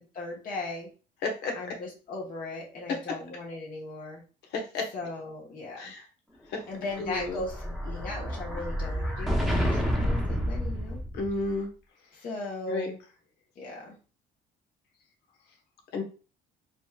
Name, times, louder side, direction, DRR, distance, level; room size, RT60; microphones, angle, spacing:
voice 1, 0.1-0.9 1.5-4.2 4.9-5.9 6.7-11.0 12.1-13.0 13.5-14.0, left 2 dB, 55° left, -3 dB, 1.4 m, -38 dB
voice 2, 1.2-1.6 4.5-4.9 5.8-6.0 6.5-6.6 7.0-7.4 11.1-11.7 12.7-12.9 15.9-16.0, left 3 dB, 80° left, 2 dB, 1.3 m, -31 dB
Explosion, 6.8-11.5, equal, ahead, 1.0 m, -29 dB
4.1 x 3.3 x 2.5 m, 0.35 s
cardioid pair, 110°, 17 cm